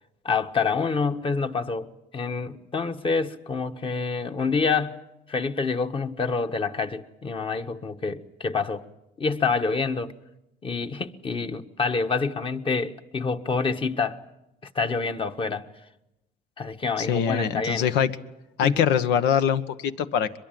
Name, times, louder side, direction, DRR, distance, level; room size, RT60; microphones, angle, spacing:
voice 1, 0.2-5.0 5.3-8.8 9.2-10.1 10.6-14.2 14.7-15.7 16.6-17.9 18.6-18.9, left 4 dB, 30° left, 1.4 m, -27 dB
voice 2, 17.0-18.1 18.6-20.4, left 8 dB, 90° left, 1.3 m, -23 dB
23.0 x 22.0 x 9.2 m
cardioid pair, 110°, 17 cm